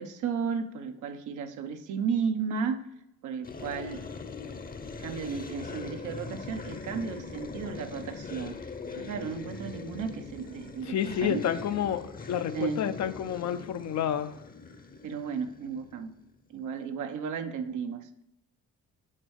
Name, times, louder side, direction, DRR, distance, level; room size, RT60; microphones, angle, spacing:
voice 1, 0.0-2.8 3.2-4.0 5.0-8.6 9.0-11.4 12.5-12.8 15.0-16.1 16.5-18.1, right 6 dB, 80° right, 8 dB, 0.9 m, -34 dB
sound 1, 3.4-16.3, left 4 dB, 30° left, 0.8 m, -41 dB
voice 2, 10.9-14.4, left 9 dB, 65° left, 10 dB, 0.7 m, -30 dB
7.6 x 4.4 x 6.4 m, 0.83 s
cardioid pair, 90°, 30 cm